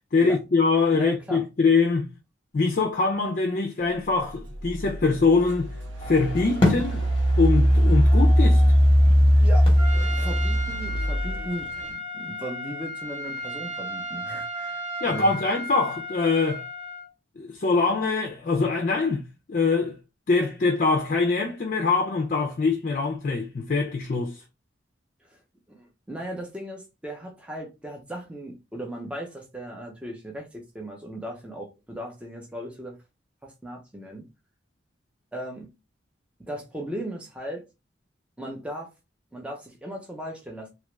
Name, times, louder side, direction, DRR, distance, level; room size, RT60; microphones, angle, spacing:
voice 1, 0.1-2.1 2.5-5.7 6.1-7.1 7.4-8.6 15.0-16.7 17.4-20.0 20.3-24.4, left 4 dB, 45° left, 0.4 m, -23 dB
voice 2, 0.9-1.4 9.4-15.4 25.3-25.4 25.7-33.0 33.4-34.3 35.3-35.7 36.4-37.6 38.4-38.9 39.3-40.7, right 1 dB, 5° right, 0.7 m, -37 dB
Engine, 4.7-4.8 5.4-11.4, equal, 85° right, 0.9 m, -20 dB
sound 1, 6.0-11.9, left 2 dB, 30° left, 0.9 m, -31 dB
Trumpet, 9.8-17.1, equal, 35° right, 1.0 m, -34 dB
2.9 x 2.3 x 3.1 m
head